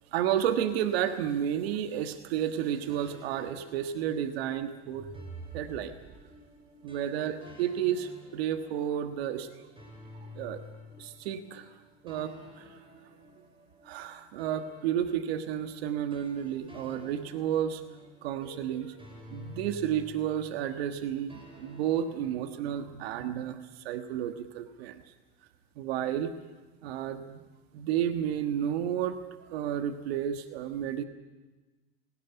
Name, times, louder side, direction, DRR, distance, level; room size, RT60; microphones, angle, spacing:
voice 1, 0.1-5.1 5.5-6.0 6.8-9.5 10.3-10.6 11.0-11.7 12.0-12.8 13.8-17.8 18.2-18.9 19.3-25.0 25.8-26.3 26.8-27.4 27.7-31.0, right 10 dB, 80° right, 9 dB, 1.6 m, -31 dB
sound 1, 2.9-22.4, left 2 dB, 15° right, 6.2 m, -52 dB
sound 2, 4.8-6.7, right 4 dB, 40° right, 4.0 m, -46 dB
18.0 x 17.5 x 10.0 m, 1.2 s
supercardioid pair, 105°, 30 cm